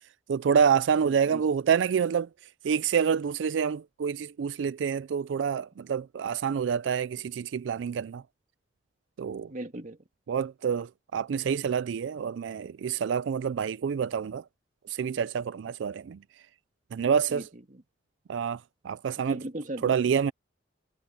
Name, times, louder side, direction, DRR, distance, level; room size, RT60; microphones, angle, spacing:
voice 1, 0.3-2.3 2.6-8.2 9.2-9.5 10.3-14.4 14.9-16.2 16.9-17.4 18.3-19.4 19.8-20.3, right 7 dB, 90° right, 0.4 m, -27 dB
voice 2, 1.0-1.4 9.5-10.0 17.3-17.8 19.1-20.1, right 1 dB, 45° right, 2.0 m, -39 dB
head